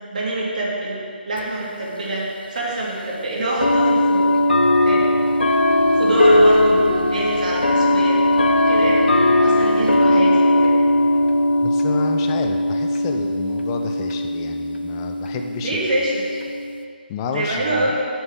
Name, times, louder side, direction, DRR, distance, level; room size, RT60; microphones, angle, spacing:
voice 1, 0.1-1.0 1.3-4.3 4.8-5.1 5.9-8.2 8.6-9.1 9.4-10.8 15.6-16.2 17.3-18.0, right 1 dB, 50° right, -5 dB, 2.9 m, -25 dB
sound 1, 1.4-1.5 2.6-2.7 3.6-16.8, left 1 dB, 70° left, 0.8 m, -18 dB
voice 2, 11.6-16.0 17.1-17.9, left 5 dB, 20° left, 5 dB, 0.7 m, -30 dB
16.5 x 7.2 x 3.8 m, 2.3 s
figure-of-eight pair, 145°, 6 cm